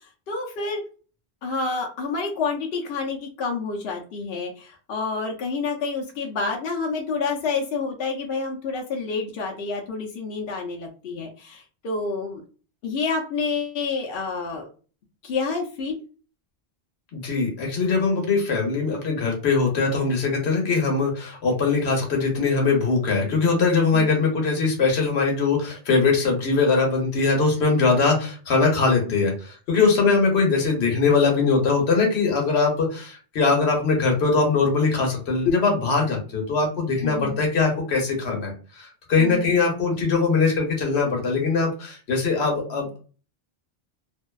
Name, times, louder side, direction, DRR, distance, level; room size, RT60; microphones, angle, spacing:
voice 1, 0.3-0.8 1.4-12.4 12.8-14.7 15.2-16.0 23.9-24.1 30.0-30.1 37.0-37.4 39.2-39.6, left 4 dB, 70° left, 0 dB, 0.8 m, -28 dB
voice 2, 17.1-43.0, left 4 dB, 90° left, 1 dB, 1.1 m, -21 dB
2.5 x 2.2 x 2.3 m, 0.37 s
omnidirectional pair, 1.1 m